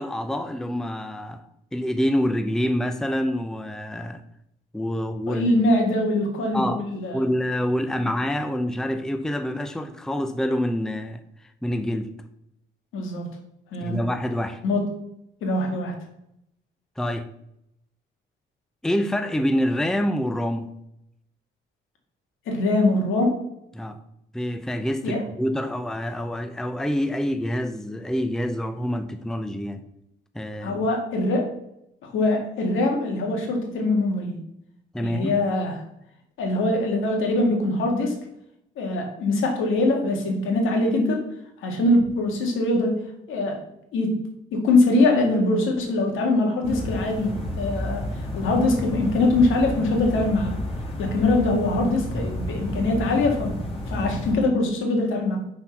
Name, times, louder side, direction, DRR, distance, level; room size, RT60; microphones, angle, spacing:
voice 1, 0.0-1.4 1.7-4.2 4.7-5.5 6.5-6.8 7.1-11.2 11.6-12.1 13.8-14.6 17.0-17.3 18.8-20.7 23.7-24.0 24.3-29.8 30.3-30.8 34.9-35.4, equal, 5° left, 0.5 m, -26 dB
voice 2, 5.3-7.3 8.0-8.1 12.9-13.3 13.7-14.0 14.6-14.8 15.4-16.0 22.5-23.4 25.0-25.2 30.6-31.5 32.0-34.4 35.0-35.8 36.4-38.1 38.8-41.2 41.6-43.0 43.3-43.6 43.9-44.3 44.5-50.6 51.0-53.6 53.9-55.4, left 2 dB, 85° left, 1.8 m, -23 dB
sound 1, 46.6-54.3, left 1 dB, 30° left, 2.0 m, -31 dB
5.9 x 4.3 x 5.9 m
cardioid pair, 90°, 20 cm